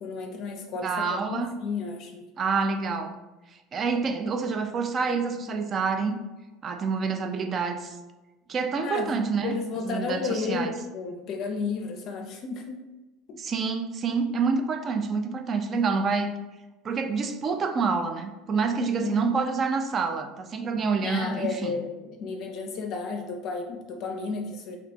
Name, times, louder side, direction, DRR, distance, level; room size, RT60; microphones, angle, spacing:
voice 1, 0.0-2.3 8.8-12.8 13.3-13.4 19.0-19.3 21.0-24.8, left 4 dB, 55° left, 2 dB, 0.5 m, -33 dB
voice 2, 0.8-1.5 2.4-3.2 3.7-6.2 6.6-8.0 8.5-9.5 9.9-10.7 13.3-16.4 16.8-21.8, right 4 dB, 35° right, 7 dB, 0.4 m, -27 dB
2.9 x 2.2 x 4.1 m, 1.1 s
supercardioid pair, 110°, 0 cm